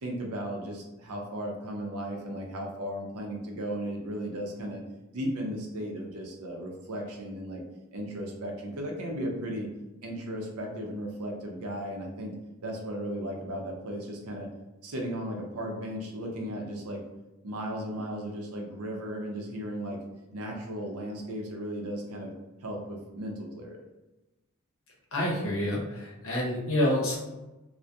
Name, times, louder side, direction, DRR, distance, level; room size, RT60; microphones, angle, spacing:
voice 1, 0.0-4.8 5.1-7.6 7.9-9.7 10.0-12.3 12.6-14.5 14.8-17.0 17.4-20.0 20.3-22.3 22.6-23.8, equal, 80° right, 1 dB, 0.6 m, -35 dB
voice 2, 25.1-27.2, left 1 dB, 60° left, -3 dB, 0.7 m, -28 dB
2.3 x 2.1 x 2.6 m, 1.0 s
head